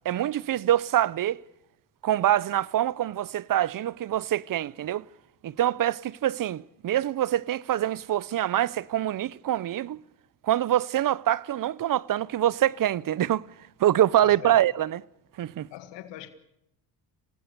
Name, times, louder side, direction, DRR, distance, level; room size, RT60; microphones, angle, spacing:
voice 1, 0.0-1.4 2.0-5.0 5.4-10.0 10.4-13.5 13.8-15.0 15.4-15.7, right 12 dB, 50° right, 0.8 m, -25 dB
voice 2, 14.2-14.6 15.7-16.3, left 13 dB, 90° left, 2.0 m, -41 dB
27.0 x 18.5 x 6.8 m
cardioid pair, 95°, 42 cm